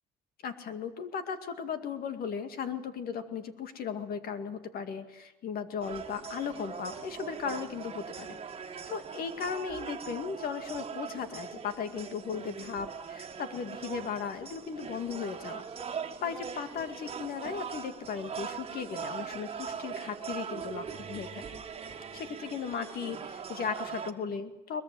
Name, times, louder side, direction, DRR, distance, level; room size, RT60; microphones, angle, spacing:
voice 1, 0.4-8.4 8.9-15.6 16.2-21.6 22.1-24.8, left 6 dB, 60° left, 8 dB, 2.3 m, -36 dB
sound 1, 5.8-24.1, right 6 dB, 35° right, 1.8 m, -41 dB
22.5 x 21.0 x 7.8 m, 0.96 s
cardioid pair, 110°, 17 cm